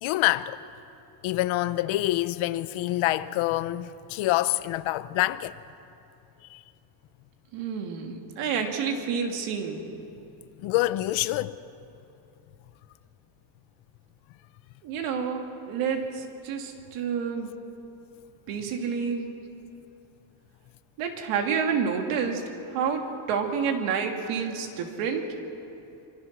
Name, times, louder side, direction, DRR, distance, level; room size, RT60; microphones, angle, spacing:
voice 1, 0.0-0.6 1.2-5.5 6.5-6.6 10.6-11.6, left 16 dB, 70° left, 0.9 m, -26 dB
voice 2, 7.5-9.8 14.8-17.6 18.5-19.3 21.0-22.4 22.7-25.2, right 6 dB, 85° right, 3.0 m, -29 dB
25.0 x 25.0 x 6.2 m
cardioid pair, 165°, 49 cm